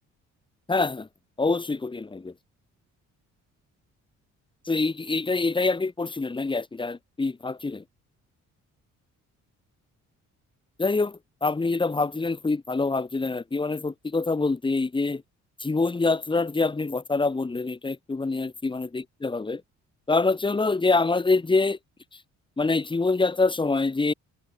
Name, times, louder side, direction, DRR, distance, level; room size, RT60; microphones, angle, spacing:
voice 1, 0.7-1.1 1.4-2.3 4.7-7.8 10.8-15.2 15.6-19.6 20.1-21.8 22.6-24.1, left 3 dB, 15° left, 1.1 m, -25 dB
cardioid pair, 90°, 30 cm